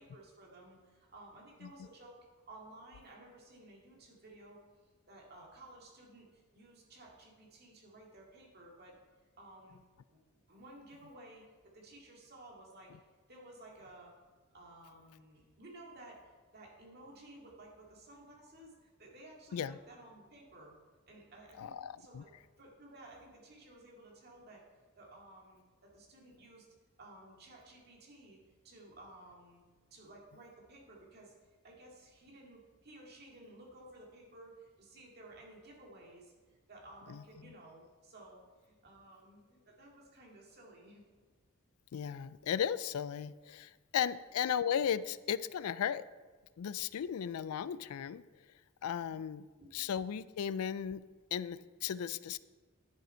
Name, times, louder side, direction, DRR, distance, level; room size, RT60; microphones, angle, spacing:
voice 1, 0.0-2.2 2.5-4.6 5.1-9.0 9.4-9.8 10.1-12.9 13.3-14.1 14.5-20.8 21.1-24.6 25.0-26.7 27.0-28.4 28.6-29.6 29.9-31.3 31.6-36.3 36.7-41.0 49.6-49.7, right 1 dB, 50° right, -1 dB, 2.2 m, -55 dB
voice 2, 21.6-22.2 37.1-37.5 41.9-46.1 46.6-48.2 48.8-49.5 49.7-51.0 51.3-52.4, left 8 dB, 90° left, 17 dB, 0.4 m, -36 dB
10.5 x 7.6 x 4.4 m, 1.3 s
head